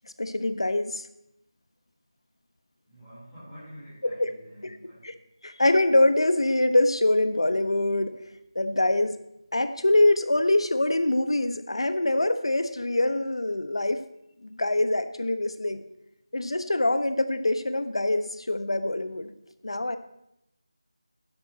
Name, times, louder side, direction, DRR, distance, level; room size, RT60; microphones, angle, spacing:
voice 1, 0.0-1.1 4.2-4.3 4.6-4.8 5.0-5.1 5.4-8.1 8.5-9.2 9.5-14.0 14.4-15.8 16.3-19.3 19.6-20.0, left 2 dB, 75° left, 10 dB, 1.1 m, -24 dB
voice 2, 2.8-5.1, equal, 5° left, -14 dB, 4.3 m, -47 dB
12.0 x 10.0 x 4.2 m, 0.83 s
figure-of-eight pair, 175°, 3 cm